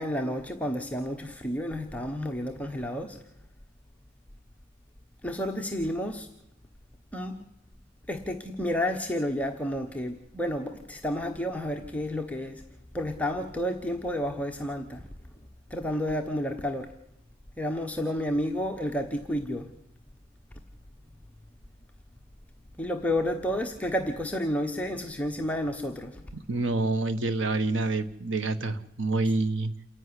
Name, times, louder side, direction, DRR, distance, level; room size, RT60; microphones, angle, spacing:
voice 1, 0.0-3.2 5.2-6.3 7.1-7.4 8.1-12.6 12.9-15.1 15.3-16.9 17.6-19.7 22.8-26.2, equal, 10° left, 3 dB, 1.2 m, -31 dB
voice 2, 26.3-29.7, right 3 dB, 85° right, 10 dB, 1.3 m, -27 dB
28.0 x 11.0 x 9.8 m, 0.81 s
head